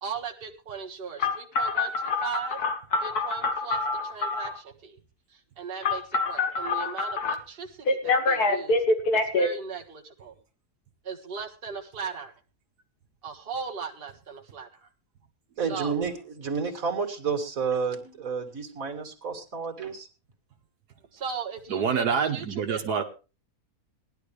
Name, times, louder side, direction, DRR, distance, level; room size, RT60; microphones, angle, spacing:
voice 1, 0.0-2.6 3.0-3.8 4.1-5.0 5.3-8.8 9.1-10.3 11.0-12.3 13.2-14.9 15.7-16.0 21.1-23.0, right 6 dB, 35° right, 1 dB, 1.8 m, -38 dB
Telephone, 1.2-4.6 5.8-7.3 7.9-9.5, left 3 dB, 75° left, 2.3 m, -25 dB
voice 2, 15.6-20.1, right 5 dB, 60° right, 5 dB, 2.6 m, -30 dB
voice 3, 21.7-23.0, right 6 dB, 85° right, 4 dB, 1.8 m, -26 dB
19.0 x 11.5 x 3.3 m, 0.32 s
omnidirectional pair, 1.7 m